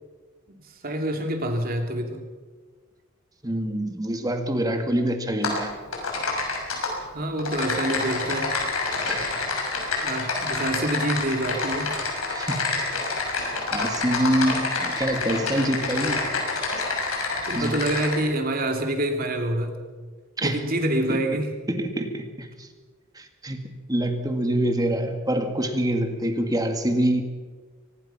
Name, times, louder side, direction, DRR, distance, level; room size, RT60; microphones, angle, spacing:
voice 1, 0.5-2.2 7.1-8.5 10.0-12.0 17.5-19.7 20.4-21.5, right 1 dB, 45° right, 4 dB, 3.0 m, -27 dB
voice 2, 3.4-5.7 9.0-9.4 12.3-12.7 13.7-16.3 17.5-17.8 20.4-20.6 21.1-21.2 21.7-22.7 23.2-27.2, right 1 dB, 20° right, 6 dB, 2.1 m, -26 dB
Typing, 5.4-5.6 5.9-6.9 7.4-18.1, left 3 dB, 90° left, 6.4 m, -27 dB
23.5 x 19.5 x 5.8 m, 1.4 s
head